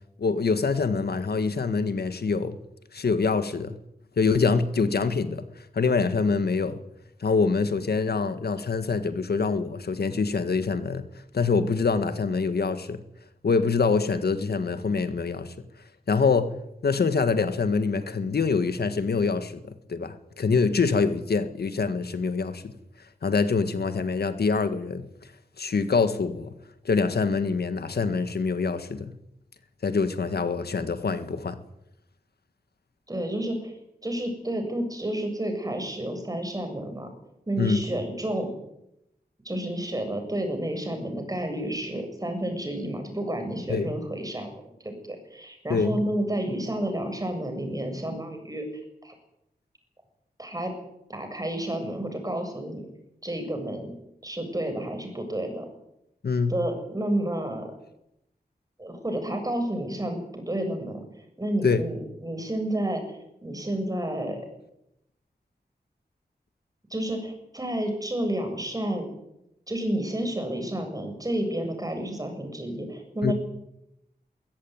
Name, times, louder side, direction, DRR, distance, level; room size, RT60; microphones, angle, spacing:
voice 1, 0.2-2.6 2.9-3.8 4.2-5.4 5.7-6.8 7.2-11.0 11.3-13.0 13.4-15.5 16.1-16.5 16.8-22.7 23.2-25.1 25.6-26.5 26.9-29.1 29.8-31.6 37.6-37.8 43.7-43.9 45.7-46.0 56.2-56.6 61.6-61.8 73.2-73.3, left 4 dB, 85° left, 10 dB, 1.7 m, -25 dB
voice 2, 33.1-33.7 34.0-37.1 37.5-38.5 39.4-44.5 44.8-48.6 49.0-49.1 50.4-50.7 51.1-52.9 53.2-53.9 54.2-55.6 56.5-57.7 58.8-61.0 61.4-64.5 66.9-69.1 69.7-73.3, right 1 dB, 20° right, 5 dB, 7.6 m, -30 dB
22.0 x 16.5 x 9.6 m, 0.82 s
wide cardioid pair, 85°, 16 cm